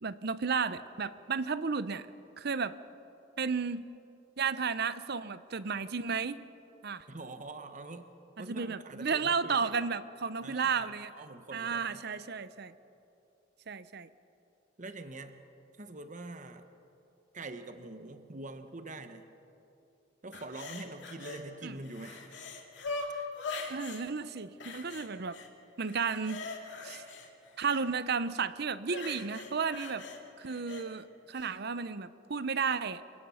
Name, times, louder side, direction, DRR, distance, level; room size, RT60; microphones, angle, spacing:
voice 1, 0.0-2.1 2.4-2.8 3.4-3.8 4.4-6.4 6.8-7.0 8.4-11.1 11.5-12.7 13.7-14.1 21.6-21.7 23.7-25.4 25.8-26.4 26.8-27.0 27.6-30.1 30.4-33.0, right 5 dB, 60° right, 14 dB, 0.7 m, -33 dB
voice 2, 7.1-8.1 8.4-9.8 10.4-12.0 14.8-15.4 15.8-16.7 17.3-19.3 20.2-22.4, right 2 dB, 40° right, 8 dB, 1.2 m, -44 dB
sound 1, 20.3-21.4 21.8-24.0 24.6-25.5 25.8-27.9 28.8-30.9 31.4-31.5, left 3 dB, 70° left, 2.5 m, -42 dB
28.0 x 17.5 x 5.7 m, 2.7 s
head